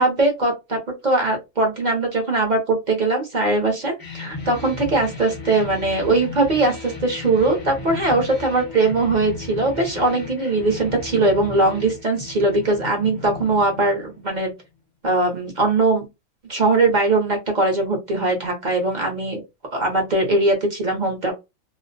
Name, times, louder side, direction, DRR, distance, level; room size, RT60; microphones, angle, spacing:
voice 1, 0.0-14.5 15.0-16.1 16.5-19.4 19.7-21.3, right 2 dB, 45° right, 1 dB, 0.6 m, -20 dB
sound 1, 4.0-14.5, left 3 dB, 25° left, 0.4 m, -35 dB
2.4 x 2.0 x 2.5 m, 0.23 s
omnidirectional pair, 1.5 m